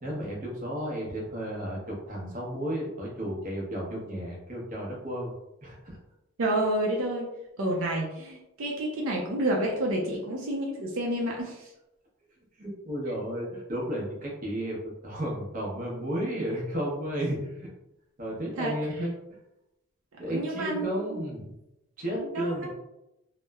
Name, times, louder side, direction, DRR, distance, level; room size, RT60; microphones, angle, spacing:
voice 1, 0.0-5.3 5.6-6.0 12.6-14.8 15.0-17.7 18.2-19.1 20.2-21.5 22.0-22.8, equal, 40° right, -3 dB, 0.7 m, -33 dB
voice 2, 6.4-7.3 7.6-11.7 18.6-18.7 20.3-20.9 22.2-22.7, right 1 dB, 75° right, -1 dB, 0.5 m, -29 dB
2.9 x 2.0 x 2.2 m, 0.89 s
head